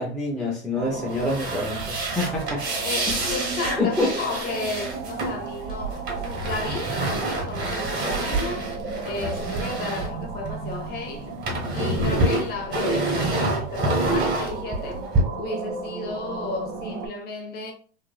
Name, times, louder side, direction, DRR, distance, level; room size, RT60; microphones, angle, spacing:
voice 1, 0.0-2.6 3.2-3.4 3.8-4.1, left 2 dB, ahead, 0.4 m, -26 dB
sound 1, 0.7-17.1, right 4 dB, 65° right, 1.0 m, -35 dB
sound 2, 1.1-10.9 11.1-15.2, right 2 dB, 25° right, 1.4 m, -27 dB
voice 2, 2.8-8.7 9.0-11.3 11.7-15.0 15.4-17.7, left 3 dB, 30° left, 0.8 m, -33 dB
3.2 x 2.5 x 2.2 m
hypercardioid pair, 120°, 35 cm